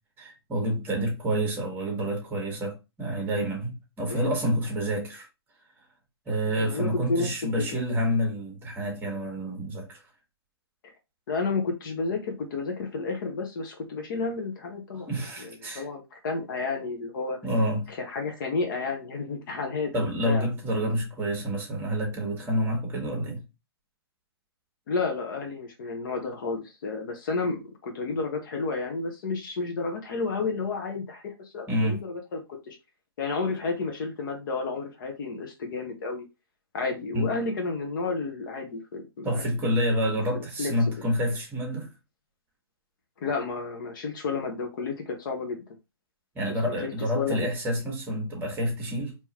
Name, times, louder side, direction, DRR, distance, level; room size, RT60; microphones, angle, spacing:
voice 1, 0.2-5.2 6.3-10.0 14.9-15.8 17.4-17.9 19.9-23.4 31.7-32.0 37.1-37.3 39.2-41.9 46.3-49.2, equal, 15° right, 1.5 m, -28 dB
voice 2, 6.6-7.3 7.8-8.0 10.8-10.9 11.3-15.1 15.4-17.4 17.9-19.9 20.2-20.4 24.9-32.4 32.7-32.8 33.2-36.3 36.7-39.4 40.3-40.7 43.2-45.6 46.7-47.5, left 4 dB, 55° left, 1.1 m, -31 dB
3.8 x 3.0 x 2.9 m
hypercardioid pair, 145°, 13 cm